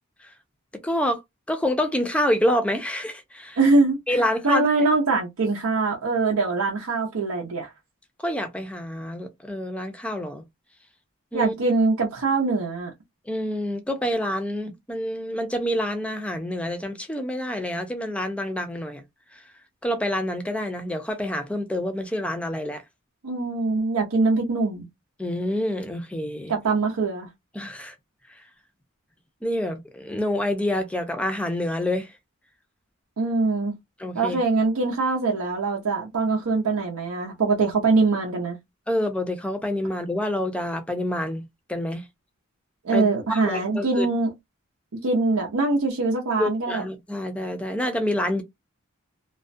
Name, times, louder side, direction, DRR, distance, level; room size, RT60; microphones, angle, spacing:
voice 1, 0.8-1.2 1.5-3.6 4.1-4.7 8.2-10.4 11.3-11.5 13.3-19.0 19.3-19.4 19.8-22.8 25.2-26.5 27.5-27.9 29.4-32.1 34.0-34.4 38.9-41.4 41.7-42.0 42.9-44.1 46.4-48.4, left 1 dB, 5° left, 0.4 m, -27 dB
voice 2, 3.6-4.0 4.4-7.7 11.3-12.9 23.2-24.9 26.5-27.3 33.2-33.7 34.1-38.6 42.8-44.3 45.0-46.8, right 3 dB, 90° right, 0.6 m, -23 dB
2.3 x 2.1 x 2.5 m
head